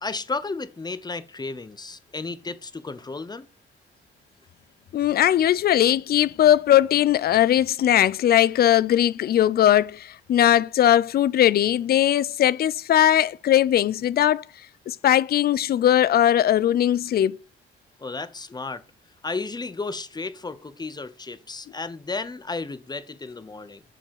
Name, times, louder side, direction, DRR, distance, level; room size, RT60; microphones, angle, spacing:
voice 1, 0.0-3.5 18.0-18.8 19.2-23.8, left 3 dB, 20° left, 0.8 m, -33 dB
voice 2, 4.9-14.4 14.9-17.4, left 11 dB, 50° left, 0.4 m, -19 dB
5.6 x 5.0 x 6.4 m
cardioid pair, 75°, 21 cm